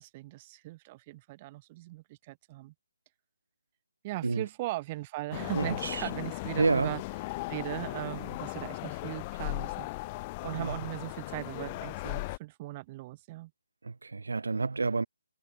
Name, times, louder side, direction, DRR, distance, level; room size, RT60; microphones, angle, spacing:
voice 1, 0.0-2.7 4.0-7.0 7.5-9.9 10.4-13.5, right 19 dB, 25° right, 5.3 m, -39 dB
sound 1, 5.3-12.4, left 22 dB, 25° left, 2.4 m, -37 dB
voice 2, 5.5-6.1 6.6-6.9 10.6-10.7 13.8-15.1, right 3 dB, 80° right, 6.7 m, -29 dB
hypercardioid pair, 155°, 0 cm